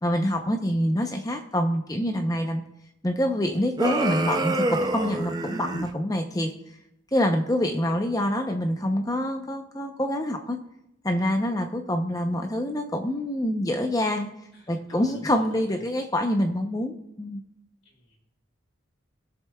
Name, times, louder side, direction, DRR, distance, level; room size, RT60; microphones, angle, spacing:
voice 1, 0.0-2.6 3.0-6.5 7.1-10.6 11.0-14.3 14.7-17.4, equal, 15° left, 5 dB, 0.7 m, -26 dB
sound 1, 3.8-5.9, right 2 dB, 20° right, 0.4 m, -27 dB
voice 2, 14.5-15.8 17.8-18.3, left 1 dB, 75° left, -2 dB, 4.4 m, -51 dB
21.5 x 7.4 x 2.3 m, 0.83 s
head